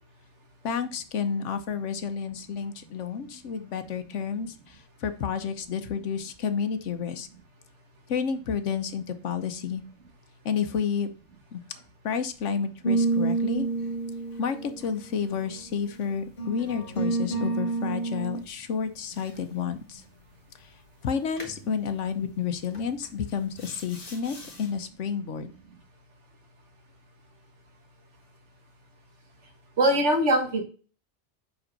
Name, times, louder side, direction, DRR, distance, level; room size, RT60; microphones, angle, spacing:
voice 1, 0.6-7.3 8.1-9.8 10.4-11.1 11.5-11.6 12.0-13.7 14.4-20.0 20.6-20.7 21.0-25.5, left 7 dB, 80° left, 10 dB, 1.2 m, -30 dB
sound 1, 12.8-15.7 16.4-18.5 21.4-21.6 22.7-23.1 23.6-24.6, right 3 dB, 50° left, 1.7 m, -29 dB
voice 2, 29.8-30.6, right 1 dB, 70° right, 3 dB, 1.9 m, -21 dB
5.4 x 5.4 x 5.3 m, 0.37 s
omnidirectional pair, 1.2 m